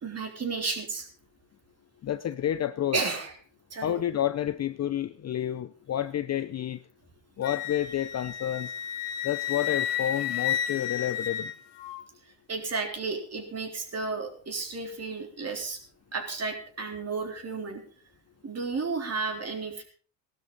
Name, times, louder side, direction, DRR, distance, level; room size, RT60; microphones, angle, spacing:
voice 1, 0.0-1.1 2.9-3.3 3.7-3.9 12.5-15.8 16.1-17.8 18.4-19.8, right 4 dB, 30° right, 4 dB, 3.6 m, -32 dB
voice 2, 2.0-3.0 3.8-6.8 7.4-8.7 9.2-11.5, left 11 dB, 35° left, 12 dB, 0.6 m, -30 dB
Wind instrument woodwind instrument, 7.4-12.0, left 10 dB, 60° left, 1.4 m, -32 dB
17.5 x 12.0 x 4.0 m, 0.42 s
supercardioid pair, 105°, 48 cm